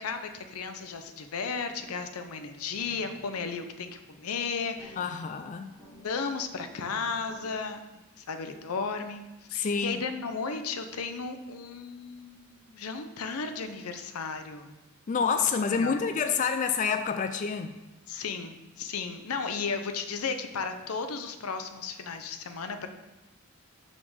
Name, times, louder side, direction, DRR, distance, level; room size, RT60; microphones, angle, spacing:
voice 1, 0.0-5.0 6.0-7.9 8.2-14.7 15.1-15.4 15.8-15.9 18.1-22.9, left 5 dB, 85° left, 8 dB, 0.6 m, -34 dB
sound 1, 1.5-7.5, left 1 dB, 5° left, 2.2 m, -55 dB
voice 2, 5.0-5.7 9.6-10.0 15.1-17.8, left 6 dB, 35° left, 8 dB, 0.3 m, -28 dB
5.9 x 4.3 x 6.2 m, 1.1 s
head